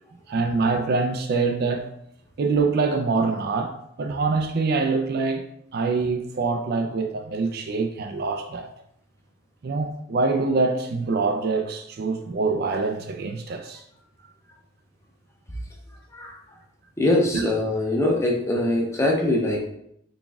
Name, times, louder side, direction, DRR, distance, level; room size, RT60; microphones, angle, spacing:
voice 1, 0.3-1.9 2.4-5.5 5.7-8.7 9.6-13.8 17.3-17.5, right 4 dB, 45° right, 0.3 m, -25 dB
voice 2, 17.0-19.7, left 1 dB, 15° left, 0.5 m, -22 dB
4.0 x 3.5 x 2.3 m
head